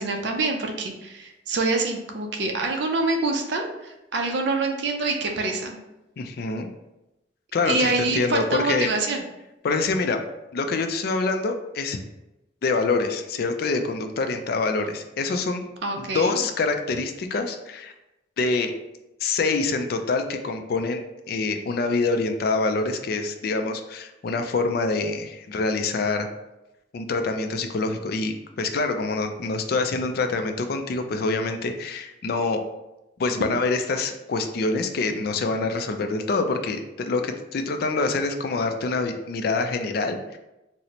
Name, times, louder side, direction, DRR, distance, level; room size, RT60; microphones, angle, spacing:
voice 1, 0.0-5.8 7.7-9.2 15.8-16.4, right 3 dB, 65° right, 3 dB, 0.5 m, -26 dB
voice 2, 6.2-6.7 7.5-8.9 9.6-10.2 10.5-12.0 12.6-15.7 16.0-17.9 18.4-18.7 19.2-26.3 26.9-32.6 33.2-40.4, left 3 dB, 50° left, 6 dB, 0.3 m, -26 dB
4.0 x 2.0 x 2.9 m, 0.95 s
head